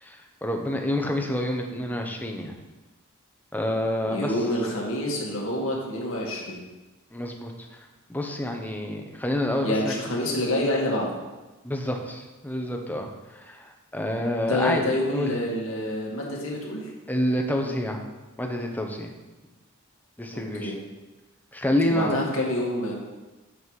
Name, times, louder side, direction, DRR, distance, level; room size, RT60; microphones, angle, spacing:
voice 1, 0.0-2.5 3.5-4.3 7.1-7.5 8.1-9.9 11.6-13.1 13.4-15.3 17.1-18.0 18.4-19.1 20.2-20.7 21.5-22.2, left 1 dB, 10° left, 2 dB, 0.8 m, -28 dB
voice 2, 4.1-6.6 9.6-11.2 14.4-16.9 20.3-20.8 21.9-22.9, left 1 dB, 65° left, -2 dB, 1.9 m, -27 dB
8.2 x 5.5 x 4.8 m, 1.1 s
head